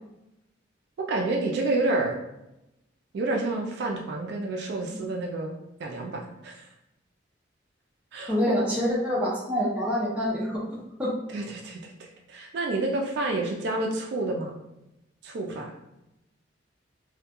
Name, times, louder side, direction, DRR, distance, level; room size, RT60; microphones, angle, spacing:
voice 1, 1.1-2.2 3.1-5.5 5.8-6.7 8.1-8.5 11.3-14.5 15.2-15.7, right 2 dB, 60° right, 1 dB, 0.3 m, -29 dB
voice 2, 8.3-11.1, equal, 5° right, -6 dB, 0.6 m, -26 dB
2.2 x 2.2 x 2.8 m, 0.92 s
head